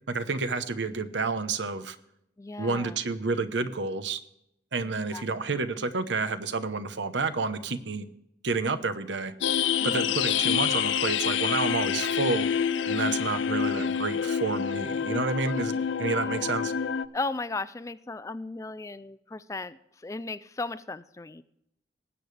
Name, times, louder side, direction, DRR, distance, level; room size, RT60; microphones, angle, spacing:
voice 1, 0.0-2.0 2.6-4.2 4.7-8.1 8.4-9.3 9.8-12.5 12.9-15.7 16.0-16.7, right 3 dB, 75° right, 11 dB, 0.9 m, -29 dB
voice 2, 2.4-3.0 4.8-5.2 9.8-10.2 16.1-16.5 17.1-21.4, left 3 dB, 15° left, 15 dB, 0.3 m, -36 dB
sound 1, 9.4-17.1, left 7 dB, 85° left, 0.5 m, -27 dB
19.5 x 8.7 x 3.3 m, 0.79 s
head